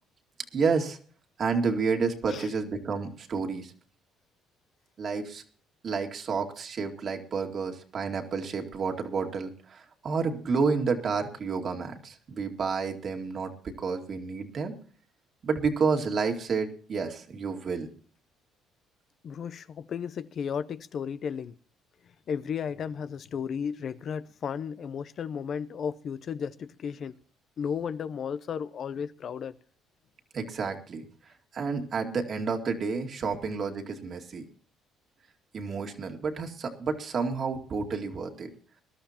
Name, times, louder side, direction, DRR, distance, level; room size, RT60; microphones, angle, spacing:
voice 1, 0.5-1.0 1.4-3.7 5.0-5.4 5.8-14.7 15.4-17.9 30.3-31.1 31.5-34.5 35.5-38.5, right 5 dB, 50° right, 2.2 m, -30 dB
voice 2, 19.2-21.6 22.0-27.2 27.6-29.6, left 7 dB, 50° left, 0.6 m, -34 dB
21.5 x 12.5 x 2.9 m
cardioid pair, 90°, 0 cm